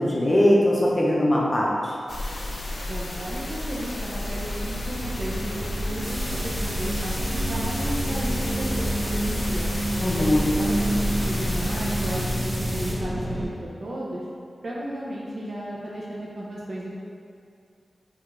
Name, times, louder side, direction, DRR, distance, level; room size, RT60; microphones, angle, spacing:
voice 1, 0.0-1.7 10.0-10.5, left 1 dB, 25° left, -4 dB, 0.6 m, -20 dB
sound 1, 2.1-12.3, left 1 dB, 85° left, 0.5 m, -33 dB
sound 2, 2.8-13.5, right 1 dB, 85° right, 1.0 m, -29 dB
voice 2, 2.9-7.1 7.5-9.7 10.1-14.2 14.6-17.0, right 1 dB, 65° right, -5 dB, 0.5 m, -34 dB
sound 3, 6.0-12.9, equal, 15° right, 0.9 m, -36 dB
3.6 x 2.4 x 3.1 m, 2.4 s
wide cardioid pair, 120°, 0 cm